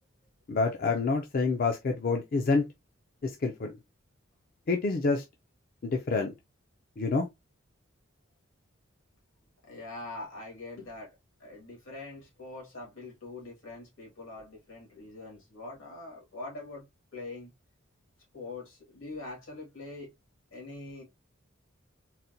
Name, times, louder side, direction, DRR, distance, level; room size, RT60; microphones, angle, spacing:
voice 1, 0.5-2.7 3.2-3.7 4.7-5.2 5.8-6.3 7.0-7.3, left 3 dB, 45° left, 0.4 m, -27 dB
voice 2, 9.6-16.9 17.1-17.5 18.3-20.1 20.5-21.0, left 2 dB, 80° left, 1.9 m, -43 dB
4.0 x 2.1 x 2.6 m
head